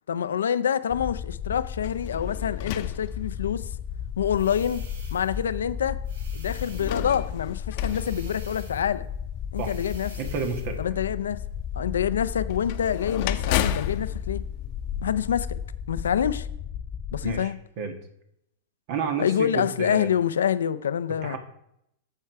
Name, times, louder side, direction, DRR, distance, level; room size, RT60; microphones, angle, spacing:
voice 1, 0.1-3.7 4.2-4.8 5.1-6.0 6.3-9.1 9.5-10.1 10.8-11.4 11.8-14.4 15.0-15.6 15.9-16.5 17.1-17.5 19.2-21.4, left 8 dB, 90° left, 0.5 m, -26 dB
sound 1, 0.9-17.4, left 8 dB, 30° left, 0.4 m, -34 dB
sound 2, 1.8-3.8 4.6-4.7 6.5-9.1 12.5-15.5, left 11 dB, 55° left, 0.8 m, -33 dB
sound 3, 4.3-5.4 6.0-7.2 7.8-8.9 9.5-10.8, right 4 dB, 80° right, 2.0 m, -49 dB
voice 2, 10.2-10.8 17.2-17.9 18.9-20.1 21.2-21.4, right 5 dB, 55° right, 1.5 m, -30 dB
13.5 x 4.6 x 4.7 m
hypercardioid pair, 125°, 0 cm